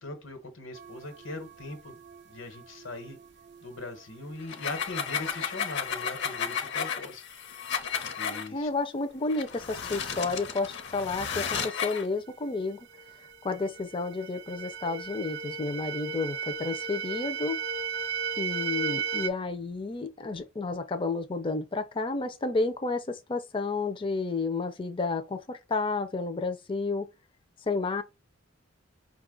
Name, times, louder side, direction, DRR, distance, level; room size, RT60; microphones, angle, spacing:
voice 1, 0.0-2.0 2.2-3.2 3.6-7.2 8.2-8.7, left 2 dB, 80° left, 1.2 m, -40 dB
sound 1, 0.7-6.1 12.3-12.4 12.8-19.3, right 6 dB, 60° right, 0.4 m, -37 dB
sound 2, 4.4-8.5 9.3-12.1, left 7 dB, 65° left, 0.8 m, -33 dB
voice 2, 8.3-12.8 13.4-17.6 18.4-27.1 27.7-28.0, left 3 dB, 25° left, 0.4 m, -31 dB
5.2 x 2.4 x 3.7 m
head